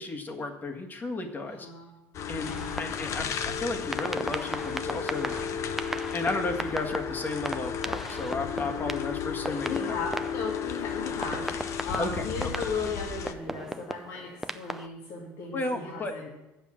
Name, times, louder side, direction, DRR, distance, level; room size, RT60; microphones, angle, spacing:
voice 1, 0.0-1.7 2.3-5.4 6.1-10.0 12.0-12.2 15.5-16.1, left 2 dB, 30° left, 4 dB, 1.7 m, -33 dB
voice 2, 1.4-1.9 2.3-2.8 9.4-16.3, left 4 dB, 75° left, -3 dB, 1.9 m, -36 dB
sound 1, 2.1-13.3, left 7 dB, 50° left, 0.8 m, -34 dB
Micro Percussion, 2.4-3.3 3.9-10.8 11.2-14.9, right 1 dB, 5° right, 0.5 m, -38 dB
8.2 x 7.1 x 7.3 m, 0.96 s
supercardioid pair, 90°, 6 cm